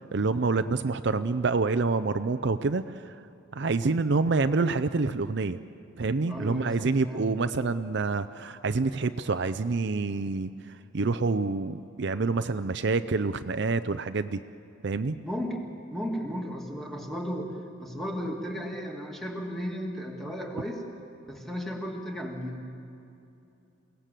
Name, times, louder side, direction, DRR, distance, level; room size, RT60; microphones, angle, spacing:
voice 1, 0.1-3.1 3.5-5.6 6.0-10.5 10.9-14.4 14.8-15.2, right 3 dB, 55° right, 10 dB, 0.5 m, -27 dB
voice 2, 6.3-7.4 15.2-15.6 15.9-20.8 21.2-22.7, equal, ahead, 0 dB, 2.4 m, -35 dB
28.5 x 18.0 x 7.6 m, 2.8 s
head